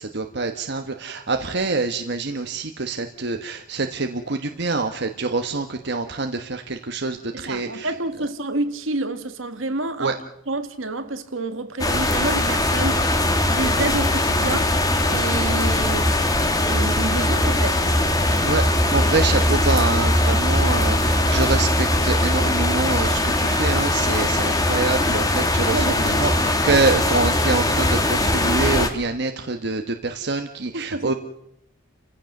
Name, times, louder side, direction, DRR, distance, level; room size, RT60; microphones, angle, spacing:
voice 1, 0.0-7.9 10.0-10.1 18.4-31.1, right 3 dB, 55° right, 1.2 m, -25 dB
voice 2, 7.3-10.2 10.5-13.1 13.4-14.8 15.1-16.2 16.7-17.9 25.6-26.3 26.5-26.6 30.7-31.1, right 2 dB, 70° right, 1.6 m, -28 dB
sound 1, 11.8-28.9, left 1 dB, 20° left, 1.8 m, -20 dB
30.0 x 15.5 x 6.6 m
head